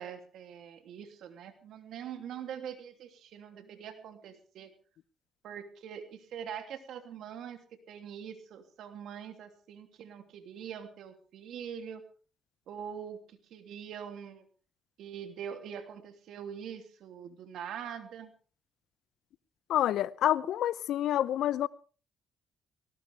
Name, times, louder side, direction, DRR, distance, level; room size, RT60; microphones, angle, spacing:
voice 1, 0.0-4.7 5.4-7.6 7.9-12.0 12.7-14.4 15.0-18.3, right 8 dB, 75° right, 3.0 m, -43 dB
voice 2, 19.7-21.7, left 12 dB, 80° left, 0.7 m, -28 dB
19.0 x 18.5 x 3.6 m
cardioid pair, 90°, 0 cm